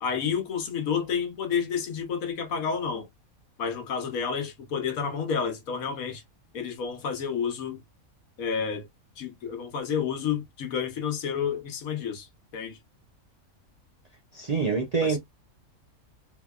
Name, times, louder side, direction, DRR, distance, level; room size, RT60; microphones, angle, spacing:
voice 1, 0.0-3.1 3.6-6.2 6.5-7.8 8.4-8.8 9.2-12.3 12.5-12.8 15.0-15.2, left 6 dB, 80° left, 1.4 m, -30 dB
voice 2, 14.3-15.2, right 5 dB, 55° right, 0.4 m, -25 dB
3.8 x 2.9 x 2.3 m
omnidirectional pair, 1.5 m